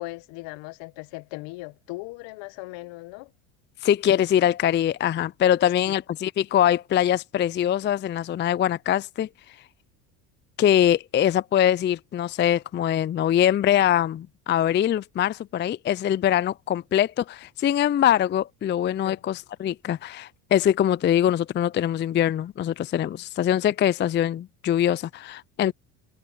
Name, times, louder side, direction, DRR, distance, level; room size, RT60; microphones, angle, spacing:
voice 1, 0.0-3.3 5.8-5.9 19.0-19.2 25.6-25.7, left 22 dB, 65° left, 1.4 m, -38 dB
voice 2, 3.8-9.3 10.6-25.7, left 10 dB, 25° left, 0.5 m, -23 dB
hypercardioid pair, 80°, 48 cm